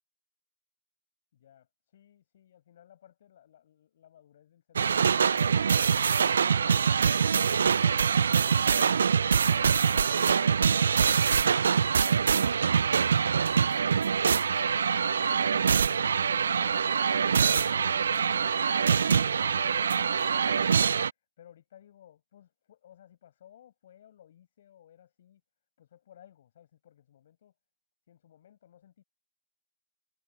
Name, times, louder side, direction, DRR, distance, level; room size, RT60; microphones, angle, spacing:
voice 1, 1.3-5.6 21.4-25.4 25.8-27.5 28.1-29.0, left 10 dB, 40° left, 6.9 m, -57 dB
sound 1, 4.8-21.1, right 6 dB, 55° right, 0.3 m, -24 dB
figure-of-eight pair, 150°, 0 cm